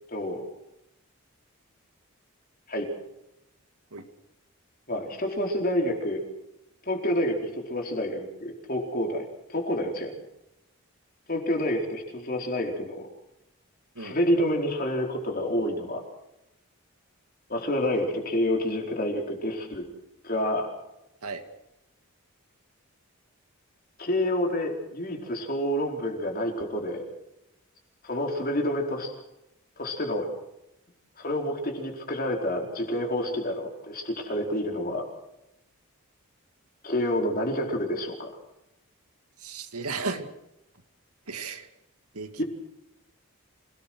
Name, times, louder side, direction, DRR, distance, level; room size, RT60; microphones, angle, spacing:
voice 1, 0.1-0.4 2.7-2.9 4.9-6.2 6.8-10.2 11.3-13.1 14.0-16.0 17.5-19.8 20.2-20.7 24.0-27.1 28.0-29.1 29.8-30.3 31.2-35.1 36.8-38.3 42.4-42.5, left 1 dB, 40° left, 1 dB, 4.4 m, -28 dB
voice 2, 39.4-40.3 41.3-41.7 42.1-42.4, right 4 dB, 90° right, 7 dB, 2.4 m, -34 dB
27.0 x 18.5 x 6.3 m, 0.88 s
head